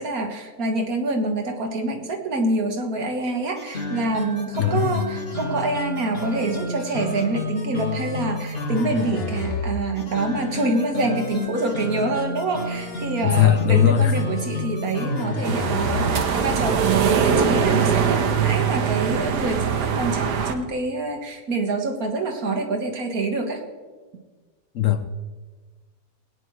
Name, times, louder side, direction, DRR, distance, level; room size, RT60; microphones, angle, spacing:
voice 1, 0.0-23.6, right 2 dB, 60° right, 1.8 m, -26 dB
sound 1, 3.6-16.4, left 2 dB, 40° left, 1.5 m, -30 dB
voice 2, 4.6-5.0 13.2-14.2 24.7-25.1, left 10 dB, 65° left, 0.9 m, -19 dB
sound 2, 15.4-20.5, right 7 dB, 85° right, 1.5 m, -22 dB
19.5 x 9.8 x 3.1 m
omnidirectional pair, 1.7 m